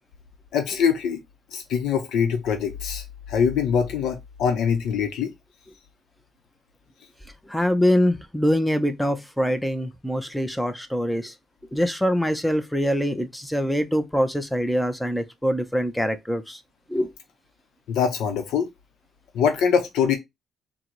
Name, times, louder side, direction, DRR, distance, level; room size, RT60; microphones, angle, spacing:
voice 1, 0.5-1.2 1.5-5.3 17.9-18.7 19.3-20.2, left 7 dB, 85° left, 0.6 m, -23 dB
voice 2, 7.4-11.3 11.7-16.6 16.9-17.1, equal, ahead, 0.4 m, -24 dB
3.8 x 2.0 x 4.3 m
cardioid pair, 175°, 0 cm